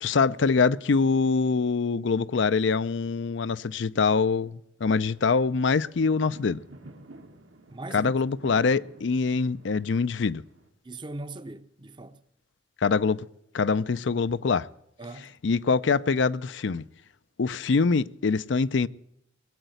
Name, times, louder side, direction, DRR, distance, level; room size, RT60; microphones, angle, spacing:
voice 1, 0.0-6.6 7.9-10.4 12.8-13.2 13.5-14.7 15.4-16.8 17.4-18.9, left 4 dB, 65° left, 0.5 m, -24 dB
sound 1, 5.0-10.7, right 2 dB, 80° right, 1.9 m, -49 dB
voice 2, 7.7-8.1 10.8-12.2 15.0-15.3, right 2 dB, 25° right, 0.7 m, -40 dB
20.0 x 8.1 x 7.8 m
head